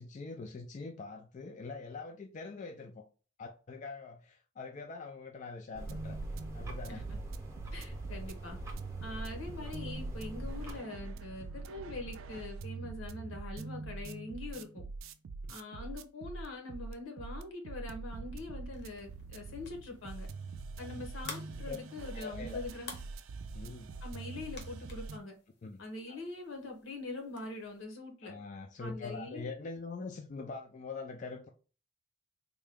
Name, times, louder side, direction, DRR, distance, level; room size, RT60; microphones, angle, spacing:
voice 1, 0.0-3.0 3.4-6.2 6.5-7.0 8.6-8.7 20.8-21.1 21.6-21.8 22.1-22.6 23.5-24.0 25.6-25.8 26.1-26.2 28.2-31.5, left 4 dB, 35° left, 0.3 m, -43 dB
sound 1, 5.7-10.8, right 1 dB, 15° right, 0.7 m, -43 dB
sound 2, 5.8-25.2, right 3 dB, 80° right, 0.4 m, -44 dB
voice 2, 7.7-8.6 9.0-14.9 15.5-20.3 20.8-23.0 24.0-25.3 25.8-28.3 28.8-29.5, left 2 dB, 80° left, 1.0 m, -43 dB
sound 3, 18.7-27.9, left 3 dB, 55° left, 0.8 m, -53 dB
3.6 x 2.2 x 3.5 m
head